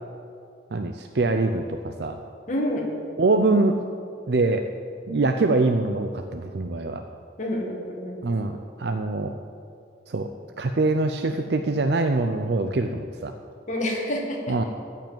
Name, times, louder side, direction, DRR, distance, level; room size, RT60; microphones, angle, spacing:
voice 1, 0.7-2.2 3.2-3.8 4.3-4.7 5.1-7.0 8.2-9.4 10.1-10.3 10.6-13.3 14.5-14.6, right 3 dB, 60° right, 6 dB, 0.6 m, -24 dB
voice 2, 2.5-3.0 7.4-8.2 13.7-14.6, left 1 dB, 40° left, -1 dB, 2.1 m, -28 dB
14.5 x 5.6 x 8.8 m, 2.4 s
head